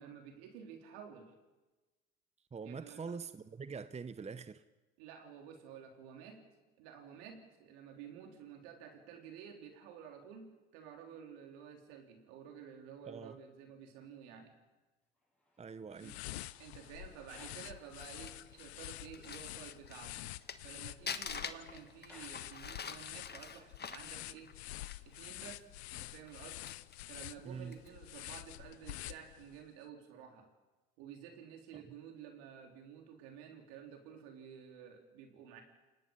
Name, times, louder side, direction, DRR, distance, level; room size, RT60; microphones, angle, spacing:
voice 1, 0.0-1.3 2.6-3.1 5.0-6.4 6.8-14.5 16.0-16.2 16.6-20.2 20.6-24.6 25.0-26.6 27.1-30.5 31.0-35.6, right 8 dB, 80° right, 4.0 m, -52 dB
voice 2, 2.5-4.6 13.1-13.4 15.6-16.2 27.4-27.8 31.7-31.8, right 5 dB, 20° right, 0.9 m, -44 dB
sound 1, 15.1-18.9 19.2-19.3 19.6-19.7 20.0-23.3 24.0-24.1, left 1 dB, 5° left, 7.0 m, -66 dB
sound 2, 16.0-29.7, left 17 dB, 90° left, 0.6 m, -48 dB
Crumpling crinkling, 17.7-20.7 21.1-25.2 25.5-25.6 26.2-27.1 27.6-27.9, left 6 dB, 30° left, 1.4 m, -45 dB
29.5 x 18.5 x 5.6 m
hypercardioid pair, 75°, 31 cm